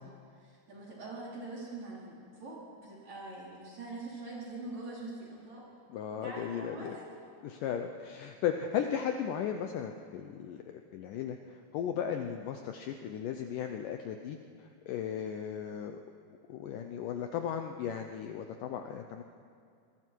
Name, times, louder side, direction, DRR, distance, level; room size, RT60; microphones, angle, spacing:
voice 1, 0.0-5.7 6.1-7.1, right 2 dB, 40° right, -5 dB, 5.7 m, -44 dB
voice 2, 5.9-7.0 7.4-10.6 10.9-16.0 16.5-19.2, left 8 dB, 90° left, 5 dB, 1.8 m, -36 dB
26.0 x 21.5 x 4.6 m, 2.3 s
omnidirectional pair, 4.9 m